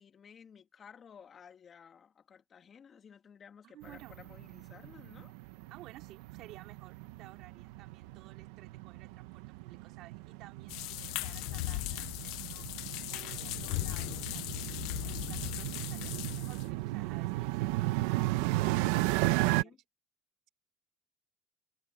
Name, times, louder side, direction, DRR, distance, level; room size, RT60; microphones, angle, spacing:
voice 1, 0.0-5.3 19.3-19.8, left 7 dB, 35° left, 3.4 m, -55 dB
voice 2, 3.6-4.1 5.3-5.4 5.7-12.7 13.1-14.8 15.0-18.0 18.7-19.8, right 16 dB, 65° right, 4.4 m, -55 dB
sound 1, 3.8-19.6, right 19 dB, 85° right, 1.3 m, -35 dB
sound 2, 10.7-16.7, left 20 dB, 75° left, 1.3 m, -38 dB
supercardioid pair, 115°, 0 cm